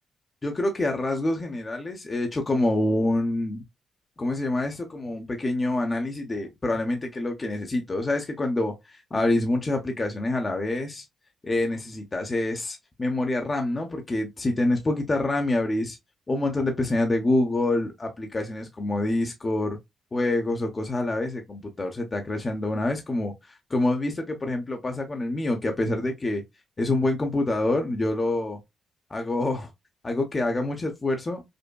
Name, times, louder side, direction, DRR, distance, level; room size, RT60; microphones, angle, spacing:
voice 1, 0.4-3.6 4.2-11.0 11.4-16.0 16.3-19.8 20.1-26.4 26.8-28.6 29.1-29.7 30.0-31.4, left 2 dB, 30° left, 0.8 m, -26 dB
5.2 x 2.1 x 2.2 m
cardioid pair, 70°, 0 cm